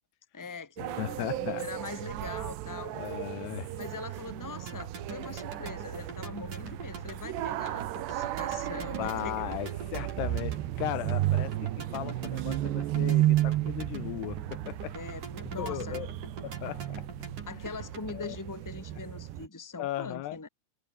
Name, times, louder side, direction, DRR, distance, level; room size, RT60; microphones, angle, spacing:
voice 1, 0.3-2.9 3.7-9.6 14.9-16.0 17.5-20.5, left 4 dB, 5° left, 2.1 m, -42 dB
sound 1, 0.8-19.5, right 14 dB, 80° right, 3.4 m, -33 dB
voice 2, 1.0-1.7 2.9-3.8 9.0-15.0 15.6-16.1 16.4-17.1 18.1-18.4 19.8-20.4, left 14 dB, 80° left, 3.1 m, -37 dB
sound 2, 4.7-18.4, right 4 dB, 50° right, 7.1 m, -44 dB
omnidirectional pair, 4.8 m